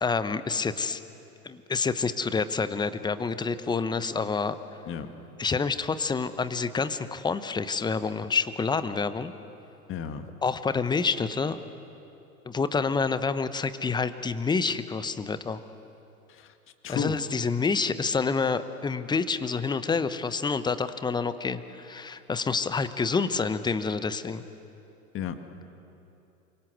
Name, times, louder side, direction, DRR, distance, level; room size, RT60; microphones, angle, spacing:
voice 1, 0.0-1.0 1.4-4.6 5.4-9.3 10.4-11.6 12.4-15.6 16.9-24.4, left 4 dB, 10° left, 13 dB, 0.9 m, -28 dB
voice 2, 9.9-10.3 16.3-16.5 16.8-17.2 25.1-25.4, left 7 dB, 25° left, 8 dB, 1.9 m, -32 dB
28.5 x 25.0 x 8.2 m, 2.8 s
figure-of-eight pair, 95°, 45 cm